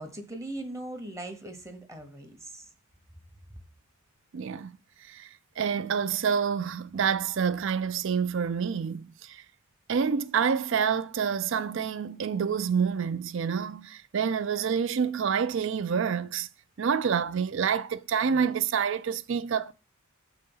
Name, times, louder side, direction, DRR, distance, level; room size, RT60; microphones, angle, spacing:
voice 1, 0.0-2.7, right 1 dB, 15° right, 0.8 m, -39 dB
voice 2, 4.3-4.8 5.1-5.3 5.6-9.4 9.9-16.5 16.8-19.7, right 6 dB, 55° right, 0.4 m, -28 dB
6.4 x 4.1 x 5.4 m
head